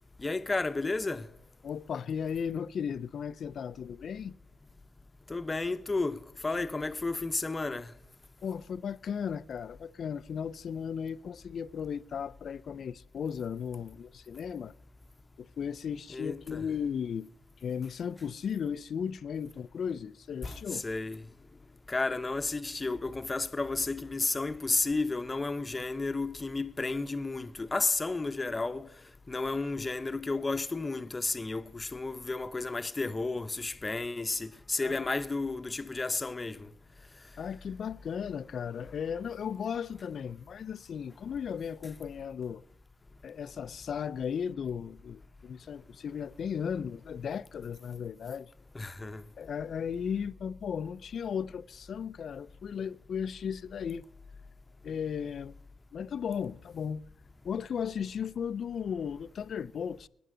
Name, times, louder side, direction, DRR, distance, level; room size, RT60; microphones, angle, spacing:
voice 1, 0.2-1.3 5.3-7.9 16.1-16.6 20.4-21.2 21.9-28.9 29.3-36.6 48.7-49.2, left 3 dB, 25° left, 0.8 m, -32 dB
voice 2, 1.6-4.4 8.4-14.7 15.4-17.3 17.6-20.8 34.8-35.1 37.4-42.6 43.2-48.5 49.4-54.0 54.8-55.6 55.9-57.0 57.4-60.1, left 7 dB, 60° left, 0.4 m, -36 dB
19.5 x 10.0 x 3.8 m
cardioid pair, 75°, 0 cm